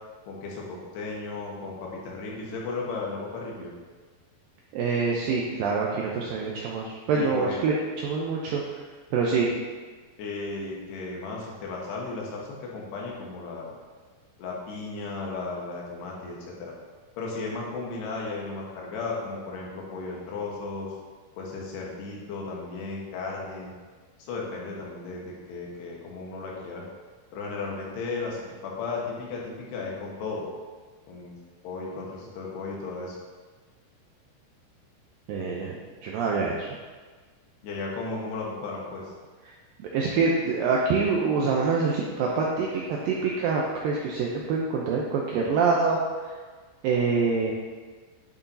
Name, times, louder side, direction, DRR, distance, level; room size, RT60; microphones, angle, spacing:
voice 1, 0.3-3.7 7.1-7.6 10.2-13.7 14.4-16.7 17.2-20.9 21.4-23.7 24.2-26.8 27.3-30.5 31.1-31.4 31.6-33.2 37.6-39.0, left 3 dB, 75° left, -2 dB, 3.3 m, -35 dB
voice 2, 4.7-7.7 8.0-8.6 9.1-9.5 35.3-36.7 39.8-46.4 46.8-47.5, right 4 dB, 90° right, -2 dB, 2.0 m, -25 dB
10.5 x 7.0 x 2.8 m, 1.4 s
omnidirectional pair, 4.9 m